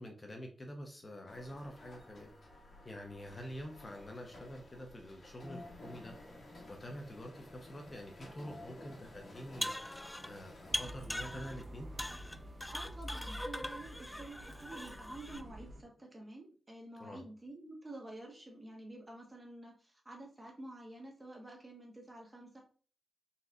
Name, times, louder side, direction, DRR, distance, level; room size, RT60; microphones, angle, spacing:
voice 1, 0.0-2.3 2.8-6.2 6.7-9.7 10.2-11.9 17.0-17.3, equal, 40° left, 3 dB, 0.8 m, -47 dB
sound 1, 1.3-10.8, left 1 dB, 65° left, 1.8 m, -53 dB
sound 2, 9.4-10.4 10.7-11.6 12.0-15.4, left 1 dB, 10° left, 0.3 m, -41 dB
Bus, 10.7-15.8, equal, 65° right, 1.4 m, -48 dB
voice 2, 12.7-22.6, right 1 dB, 25° right, 0 dB, 1.3 m, -50 dB
4.2 x 4.0 x 2.5 m, 0.41 s
cardioid pair, 60°, 0 cm